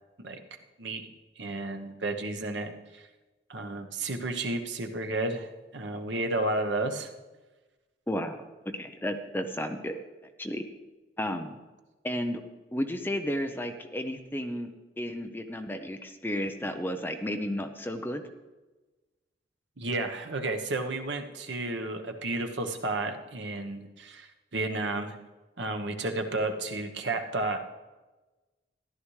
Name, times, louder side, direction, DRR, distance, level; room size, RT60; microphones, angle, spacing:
voice 1, 1.4-3.1 3.5-5.5 5.7-7.1 19.8-25.1 25.6-27.6, right 2 dB, 85° right, 5 dB, 1.1 m, -32 dB
voice 2, 8.1-8.4 8.7-10.0 10.4-10.6 11.2-11.6 12.0-12.4 12.7-14.7 15.0-18.2, equal, 10° left, 6 dB, 0.6 m, -32 dB
14.0 x 11.5 x 3.2 m, 1.2 s
head